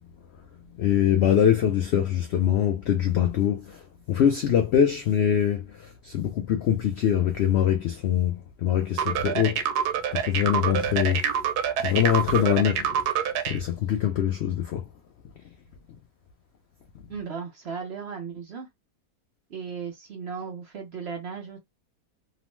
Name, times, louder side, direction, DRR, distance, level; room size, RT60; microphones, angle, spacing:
voice 1, 0.8-3.8 4.1-9.6 10.1-11.3 11.8-12.9 13.5-14.8, left 9 dB, 75° left, 0.6 m, -23 dB
sound 1, 9.0-13.6, right 8 dB, 80° right, 1.1 m, -26 dB
voice 2, 17.1-18.7 19.5-21.6, right 6 dB, 60° right, 0.7 m, -36 dB
3.0 x 2.0 x 3.0 m
omnidirectional pair, 1.6 m